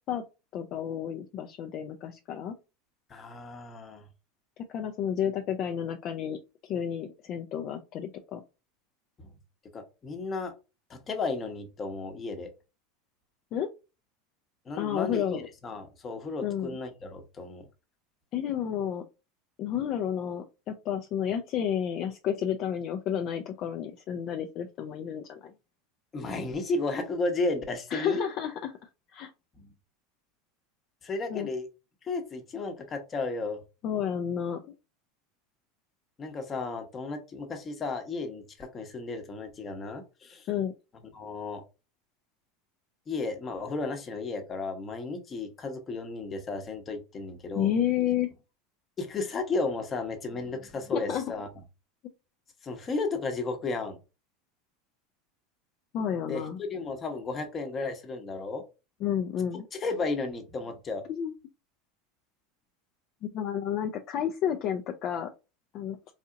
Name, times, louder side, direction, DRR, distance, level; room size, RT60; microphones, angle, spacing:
voice 1, 0.5-2.5 4.7-8.4 13.5-13.7 14.8-15.4 16.4-16.8 18.3-19.0 19.6-25.5 27.9-29.3 31.3-31.5 33.8-34.7 40.5-40.7 47.6-48.3 50.9-51.2 55.9-56.6 59.0-59.7 61.1-61.3 63.3-65.3 65.7-66.0, left 9 dB, 45° left, 5 dB, 0.4 m, -31 dB
voice 2, 3.1-4.1 9.7-10.5 10.9-12.5 14.7-17.6 26.1-28.2 29.6-29.7 31.0-31.7 32.0-33.6 36.2-40.5 41.1-41.6 43.1-47.7 49.0-51.5 52.6-54.0 56.3-58.6 59.7-61.0, left 3 dB, 25° left, 5 dB, 0.9 m, -33 dB
4.0 x 2.8 x 2.4 m, 0.28 s
supercardioid pair, 130°, 0 cm